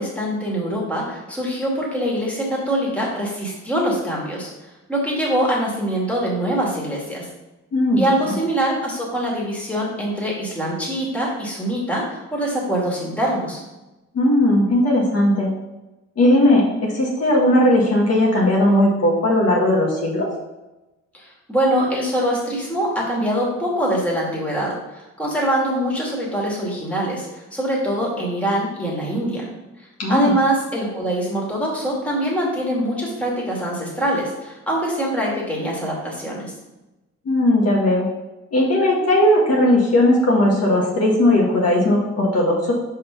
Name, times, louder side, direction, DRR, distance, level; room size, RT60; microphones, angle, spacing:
voice 1, 0.0-4.5 4.9-7.3 8.0-13.6 21.1-29.5 29.8-36.5, right 1 dB, 5° left, -4 dB, 2.2 m, -24 dB
voice 2, 14.1-15.5 16.2-20.3 30.0-30.3 37.2-38.1 38.5-42.7, left 1 dB, 55° left, -3 dB, 1.5 m, -17 dB
5.1 x 3.8 x 5.8 m, 1.0 s
cardioid pair, 90°, 30 cm